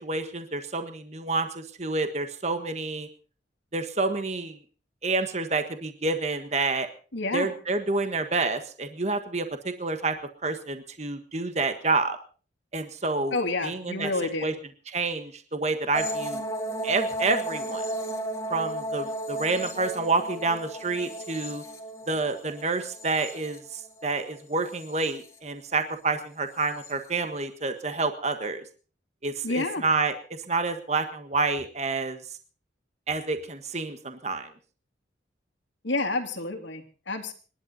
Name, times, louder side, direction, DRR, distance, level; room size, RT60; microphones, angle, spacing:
voice 1, 0.0-3.1 3.7-4.6 5.0-6.9 7.3-10.1 10.4-12.2 12.7-13.4 13.6-14.1 14.4-14.5 14.9-16.4 16.8-17.8 18.5-21.6 22.1-28.6 29.2-30.2 30.5-32.2 33.1-34.5, right 3 dB, 35° right, 8 dB, 1.5 m, -28 dB
voice 2, 7.1-7.5 13.3-14.5 29.4-29.8 35.8-37.3, left 2 dB, 80° left, 4 dB, 3.0 m, -29 dB
sound 1, 15.9-24.1 24.5-25.3 26.6-26.9, right 1 dB, 15° left, 2.3 m, -34 dB
26.5 x 11.5 x 4.1 m, 0.38 s
head